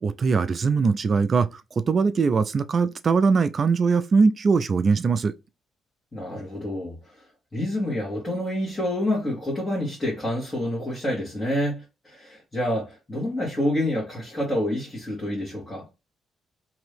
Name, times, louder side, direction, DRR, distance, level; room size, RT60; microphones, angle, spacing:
voice 1, 0.0-1.5 1.8-5.3, right 5 dB, 40° right, 0.4 m, -21 dB
voice 2, 6.1-7.2 7.5-15.8, left 1 dB, 15° left, 1.6 m, -28 dB
2.9 x 2.6 x 3.3 m
cardioid pair, 105°, 0 cm